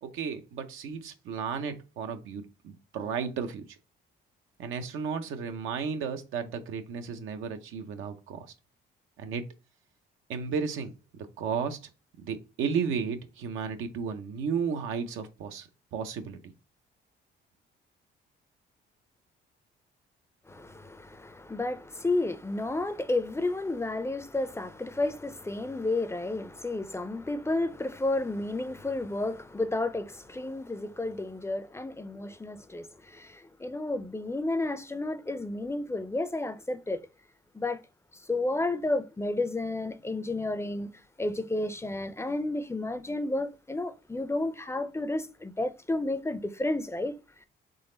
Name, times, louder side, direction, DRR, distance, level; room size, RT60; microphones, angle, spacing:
voice 1, 0.0-3.6 4.6-8.5 9.2-9.4 10.3-11.8 12.2-16.5, right 6 dB, 90° right, 0.7 m, -33 dB
voice 2, 20.5-37.1 37.5-37.8 38.1-40.9 41.2-47.2, left 2 dB, 15° left, 0.4 m, -31 dB
4.0 x 3.2 x 3.8 m
cardioid pair, 90°, 20 cm